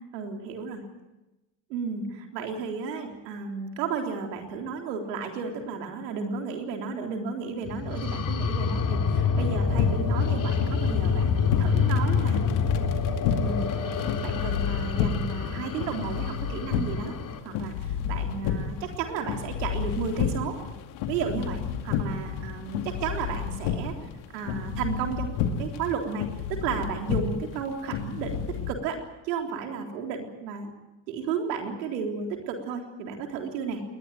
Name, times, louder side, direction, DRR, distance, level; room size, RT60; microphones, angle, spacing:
voice 1, 0.1-0.8 1.7-12.4 13.4-13.9 14.2-17.1 17.4-20.6 21.1-23.9 24.3-30.7 31.1-33.8, right 5 dB, 85° right, 3 dB, 3.8 m, -33 dB
sound 1, 7.7-17.4, left 5 dB, 40° left, 3.2 m, -27 dB
sound 2, 9.7-28.7, left 7 dB, 70° left, 2.4 m, -31 dB
21.0 x 20.0 x 9.1 m, 1.0 s
hypercardioid pair, 65°, 48 cm